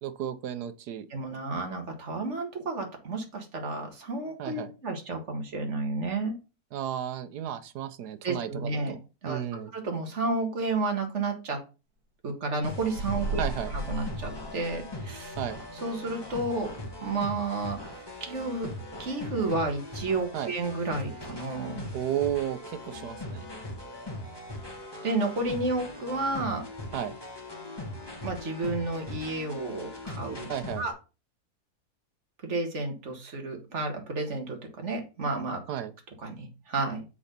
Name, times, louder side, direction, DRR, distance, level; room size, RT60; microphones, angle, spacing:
voice 1, 0.0-1.1 4.4-4.7 6.7-9.0 9.3-9.7 13.4-13.7 15.4-15.6 20.3-20.5 21.9-23.5 26.9-27.2 30.5-30.9 35.7-35.9, right 10 dB, 90° right, 1.3 m, -33 dB
voice 2, 1.1-6.3 8.2-8.9 9.2-9.4 9.7-11.6 12.2-13.4 13.9-15.3 15.8-16.7 17.0-18.7 19.0-21.9 25.0-26.6 28.2-30.5 30.8-30.9 32.4-35.6 36.2-37.0, right 3 dB, 50° right, 1.9 m, -31 dB
sound 1, 12.6-30.9, left 1 dB, 15° left, 1.6 m, -40 dB
sound 2, 12.9-15.2, right 2 dB, 70° right, 1.9 m, -34 dB
6.9 x 4.2 x 5.2 m
omnidirectional pair, 1.6 m